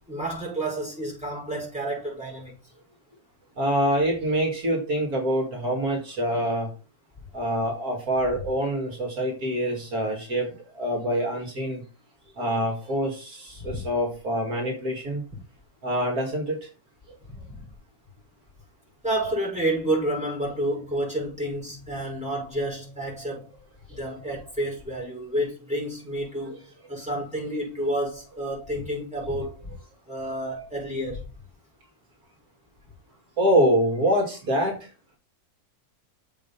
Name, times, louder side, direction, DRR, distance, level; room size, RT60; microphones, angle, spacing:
voice 1, 0.1-2.6 13.7-13.8 17.3-17.6 19.0-23.5 23.9-26.6 26.9-29.7 30.1-31.2, right 1 dB, 5° right, 5.8 m, -30 dB
voice 2, 3.6-6.7 7.3-11.8 12.4-15.2 15.8-16.7 23.9-24.0 33.4-34.9, equal, 75° right, 2.7 m, -25 dB
7.5 x 5.6 x 5.6 m
omnidirectional pair, 1.6 m